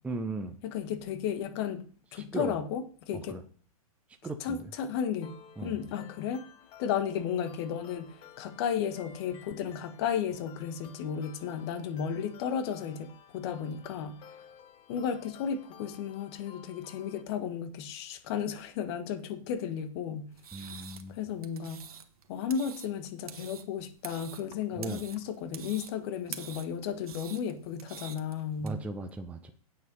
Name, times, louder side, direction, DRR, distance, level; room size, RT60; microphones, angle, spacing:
voice 1, 0.0-0.6 2.1-2.6 3.3-3.4 4.2-4.6 5.6-5.8 20.5-21.2 24.8-25.0 28.6-29.5, right 3 dB, 5° right, 5 dB, 0.7 m, -37 dB
voice 2, 0.6-1.8 2.1-3.4 4.4-6.4 6.8-14.4 14.9-20.3 20.6-21.8 22.3-28.8, left 8 dB, 45° left, 10 dB, 1.6 m, -34 dB
sound 1, 5.2-17.2, left 9 dB, 25° left, 1.2 m, -54 dB
sound 2, 20.3-28.7, right 8 dB, 70° right, 1.5 m, -47 dB
9.1 x 7.8 x 5.5 m, 0.43 s
hypercardioid pair, 130°, 19 cm